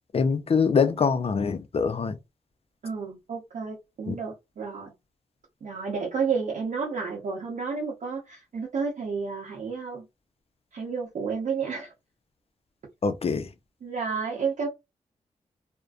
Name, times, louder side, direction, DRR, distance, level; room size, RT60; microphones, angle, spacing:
voice 1, 0.1-2.2 4.1-4.2 13.0-13.5, left 5 dB, 45° left, 0.5 m, -24 dB
voice 2, 2.8-4.9 5.6-10.0 10.7-11.9 13.8-14.7, right 5 dB, 65° right, 0.7 m, -31 dB
2.5 x 2.1 x 2.3 m
supercardioid pair, 45°, 14 cm